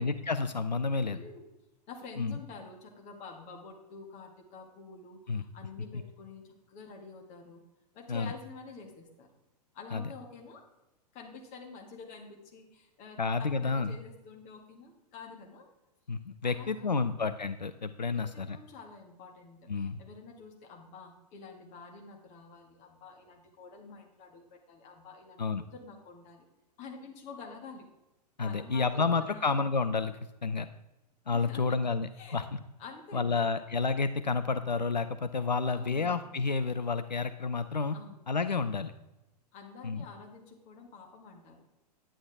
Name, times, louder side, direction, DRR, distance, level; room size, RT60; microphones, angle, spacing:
voice 1, 0.0-1.2 2.2-2.3 5.3-5.4 8.1-8.3 9.9-10.0 13.2-13.9 16.1-18.6 19.7-20.0 25.4-25.6 28.4-30.1 30.4-30.7 31.3-32.6 33.1-38.0 38.3-38.9 39.8-40.0, left 4 dB, 85° left, 11 dB, 0.5 m, -30 dB
voice 2, 1.1-1.5 1.9-7.6 7.9-9.3 9.7-10.6 11.1-15.7 16.4-17.1 18.1-25.4 25.7-26.5 26.8-27.9 28.4-29.6 31.3-31.8 32.2-32.4 32.8-33.5 35.7-36.2 37.9-38.3 39.5-41.7, left 4 dB, 35° left, 2 dB, 2.0 m, -48 dB
10.0 x 9.5 x 3.5 m, 0.98 s
figure-of-eight pair, 105°, 21 cm